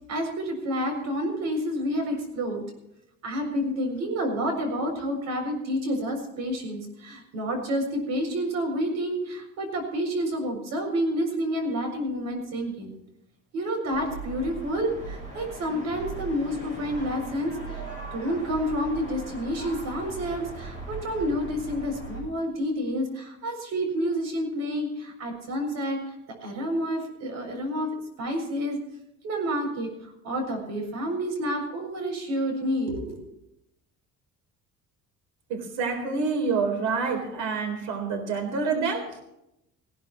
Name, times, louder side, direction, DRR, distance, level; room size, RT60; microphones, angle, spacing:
voice 1, 0.1-2.6 3.2-13.0 13.5-17.9 18.1-26.2 26.4-28.8 29.2-33.2, equal, 60° right, 4 dB, 7.1 m, -29 dB
sound 1, 13.9-22.2, right 2 dB, 25° right, 7.8 m, -39 dB
voice 2, 35.5-39.2, right 4 dB, 85° right, 5 dB, 4.0 m, -27 dB
20.0 x 17.0 x 3.1 m, 0.82 s
cardioid pair, 180°, 30 cm